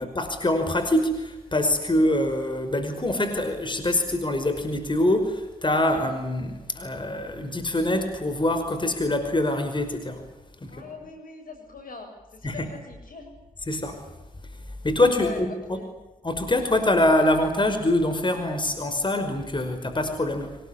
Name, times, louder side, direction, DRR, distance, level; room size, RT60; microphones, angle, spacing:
voice 1, 0.0-10.3 10.6-10.9 12.4-12.7 13.7-14.0 14.8-15.8 16.2-20.6, left 1 dB, 30° left, 7 dB, 5.4 m, -24 dB
voice 2, 10.7-13.3 15.1-16.0, left 3 dB, 70° left, 5 dB, 7.4 m, -41 dB
24.5 x 20.5 x 10.0 m, 1.0 s
supercardioid pair, 40°, 15 cm